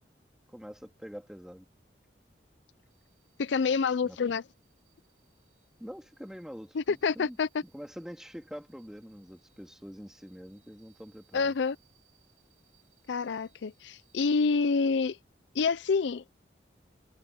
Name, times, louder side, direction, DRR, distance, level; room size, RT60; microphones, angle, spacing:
voice 1, 0.5-1.7 4.0-4.2 5.8-7.4 7.6-11.5, equal, 5° right, 2.6 m, -45 dB
sound 1, 2.9-14.7, right 10 dB, 40° right, 7.0 m, -71 dB
voice 2, 3.4-4.4 6.7-7.6 11.3-11.8 13.1-15.2 15.5-16.3, left 4 dB, 80° left, 0.5 m, -27 dB
head